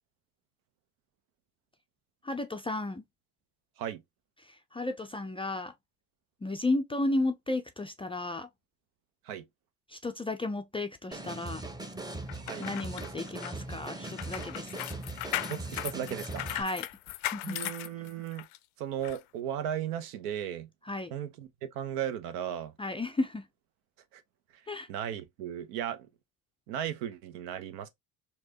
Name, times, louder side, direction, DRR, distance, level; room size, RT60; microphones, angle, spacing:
voice 1, 2.2-3.0 4.5-5.7 6.4-8.5 9.9-11.6 12.6-14.8 16.5-16.9 17.3-17.7 20.9-21.1 22.8-23.5 24.7-24.9, left 2 dB, 15° left, 0.3 m, -33 dB
sound 1, 11.1-16.6, right 2 dB, 10° right, 0.7 m, -40 dB
sound 2, 12.3-18.6 19.0-19.2, left 15 dB, 70° left, 0.5 m, -38 dB
voice 2, 12.3-12.7 13.0-13.1 15.5-16.6 17.4-18.5 18.8-20.7 21.1-22.7 24.1-24.2 24.9-26.1 26.7-27.9, right 10 dB, 75° right, 0.8 m, -36 dB
4.5 x 2.7 x 2.8 m
hypercardioid pair, 65°, 47 cm